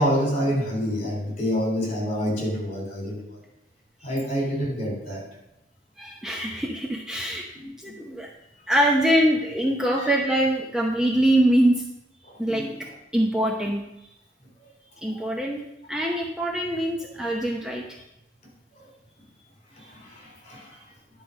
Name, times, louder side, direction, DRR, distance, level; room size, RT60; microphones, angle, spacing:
voice 1, 0.0-3.4 4.0-5.2 7.5-8.0 12.2-12.9 15.1-15.2 16.0-16.1 17.0-17.1 18.8-18.9 19.8-20.8, equal, 40° left, -1 dB, 3.6 m, -28 dB
voice 2, 6.0-7.4 7.8-8.3 8.7-11.8 12.4-12.7 13.1-13.8 15.0-15.6 15.9-17.8, right 1 dB, 5° right, -1 dB, 0.7 m, -23 dB
10.5 x 4.7 x 6.4 m, 0.87 s
head